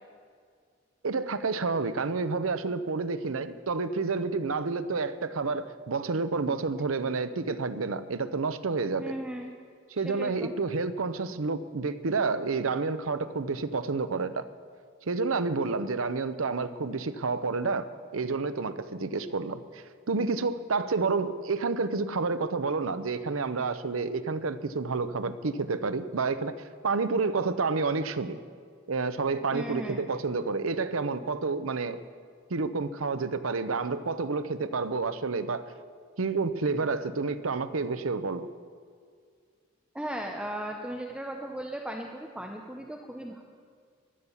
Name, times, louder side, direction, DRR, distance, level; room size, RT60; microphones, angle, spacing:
voice 1, 1.0-9.2 9.9-14.4 15.1-26.5 26.8-28.4 28.9-32.0 32.5-35.6 36.2-38.5, right 4 dB, 80° right, 12 dB, 0.7 m, -29 dB
voice 2, 9.0-9.5 10.1-10.5 29.5-30.0 39.9-43.4, right 1 dB, 5° right, 2 dB, 0.8 m, -36 dB
15.0 x 10.5 x 7.1 m, 2.1 s
head